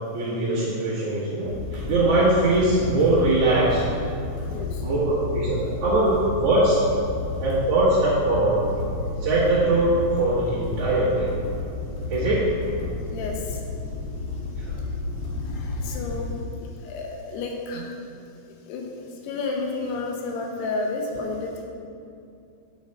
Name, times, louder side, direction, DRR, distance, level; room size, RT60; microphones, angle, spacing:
voice 1, 0.1-3.8 4.8-6.7 7.4-8.6 9.2-11.3 12.1-12.4 14.6-14.7, right 2 dB, 55° right, -12 dB, 1.8 m, -21 dB
sound 1, 1.4-16.3, left 3 dB, 45° left, 2.4 m, -31 dB
voice 2, 4.5-4.8 13.1-13.6 15.3-16.3 16.8-17.9 18.7-21.6, left 3 dB, 85° left, 1 dB, 2.8 m, -31 dB
7.9 x 5.8 x 4.3 m, 2.5 s
omnidirectional pair, 4.8 m